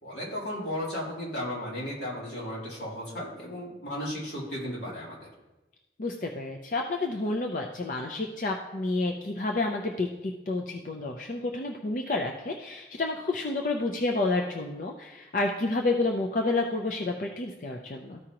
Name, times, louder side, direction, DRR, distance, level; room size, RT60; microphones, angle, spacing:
voice 1, 0.0-5.3, equal, 85° left, -5 dB, 2.8 m, -35 dB
voice 2, 6.0-18.2, left 2 dB, 45° left, 1 dB, 0.5 m, -30 dB
13.5 x 5.0 x 2.9 m, 1.1 s
head